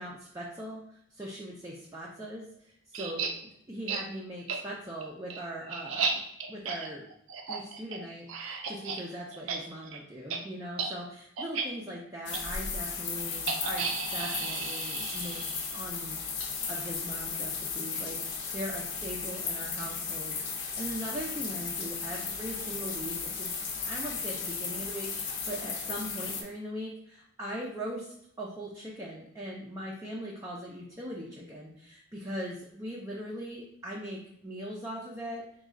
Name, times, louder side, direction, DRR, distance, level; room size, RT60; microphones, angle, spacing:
voice 1, 0.0-6.2 6.5-7.1 7.5-16.3 16.7-23.5 23.9-35.6, equal, 15° right, -4 dB, 0.5 m, -40 dB
sound 1, 2.9-3.3 3.9-4.0 4.5-4.6 5.0-9.0 9.3-9.6 9.8-10.0 10.3-10.4 10.7-10.9 11.4-11.7 12.3-12.4 13.5-15.8, right 5 dB, 80° right, 0.5 m, -34 dB
sound 2, 12.3-26.4, left 5 dB, 60° left, 0.7 m, -35 dB
4.1 x 2.3 x 3.7 m, 0.71 s
head